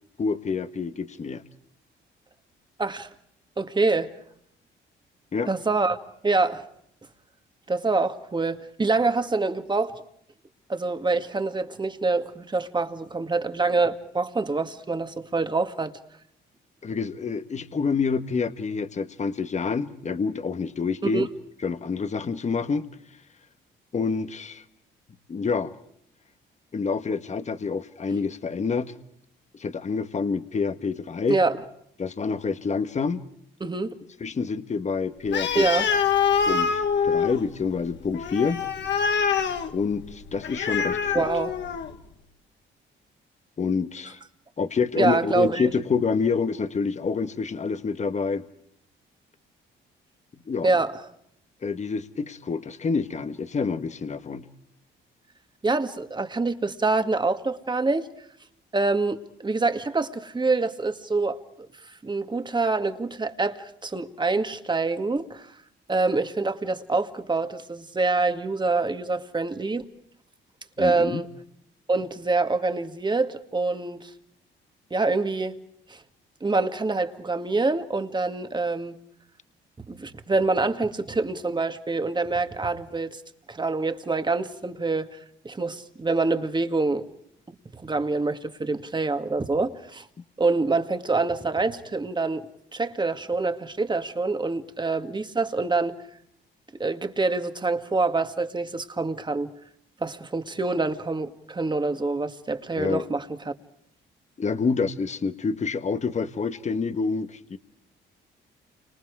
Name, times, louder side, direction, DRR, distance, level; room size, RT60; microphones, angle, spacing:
voice 1, 0.2-1.4 5.3-5.5 16.8-21.3 21.6-22.9 23.9-24.6 25.3-25.7 26.7-29.0 29.6-31.4 32.0-33.2 34.2-35.7 36.5-38.6 39.7-41.3 43.6-44.2 44.6-48.4 50.5-50.7 51.6-54.5 70.8-71.2 102.7-103.0 104.4-107.6, left 5 dB, 35° left, 1.6 m, -27 dB
voice 2, 3.6-4.1 5.5-6.0 6.2-6.6 7.7-10.0 10.7-15.9 21.0-21.3 31.3-31.6 33.6-33.9 35.6-35.9 41.1-41.5 45.0-45.7 50.6-50.9 55.6-58.1 58.7-61.4 62.0-65.5 65.9-69.9 70.8-71.3 71.9-74.1 74.9-75.5 75.9-76.0 76.4-79.0 79.9-83.2 83.5-85.2 85.4-87.1 87.8-90.1 90.4-92.5 92.7-96.0 96.7-99.5 100.0-103.5, right 3 dB, 20° right, 2.1 m, -26 dB
Animal, 35.3-42.0, left 6 dB, 65° left, 2.2 m, -25 dB
30.0 x 26.0 x 4.9 m
cardioid pair, 90°, 20 cm